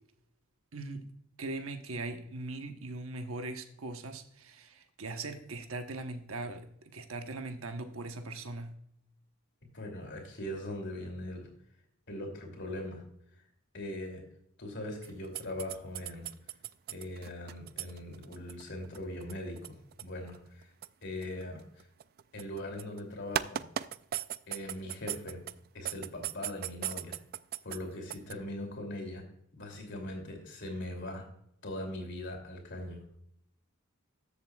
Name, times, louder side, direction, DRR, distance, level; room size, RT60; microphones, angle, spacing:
voice 1, 0.7-1.1 1.4-8.7, right 2 dB, 75° right, 6 dB, 1.1 m, -40 dB
voice 2, 9.7-11.5 12.1-13.0 13.7-14.2 14.6-16.3 16.9-20.7 21.0-21.9 22.3-23.6 24.5-25.4 25.7-27.2 27.6-29.3 29.5-31.2 31.6-33.0, left 1 dB, 55° left, 2 dB, 2.8 m, -40 dB
sound 1, 15.0-23.0 23.3-25.6 25.8-27.8 28.1-28.3, right 11 dB, 45° right, 0.3 m, -37 dB
13.5 x 7.7 x 2.4 m, 0.74 s
head